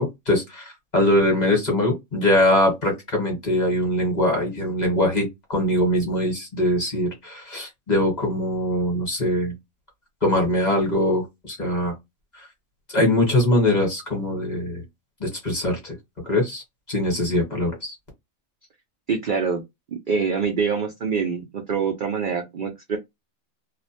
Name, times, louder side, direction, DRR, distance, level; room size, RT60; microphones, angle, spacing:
voice 1, 0.0-9.5 10.2-11.9 12.9-14.8 15.2-15.9 16.3-16.6 16.9-17.9, left 1 dB, 35° left, 1.0 m, -22 dB
voice 2, 19.1-19.6 20.1-23.0, right 5 dB, 70° right, 0.4 m, -25 dB
2.4 x 2.1 x 2.7 m
omnidirectional pair, 1.5 m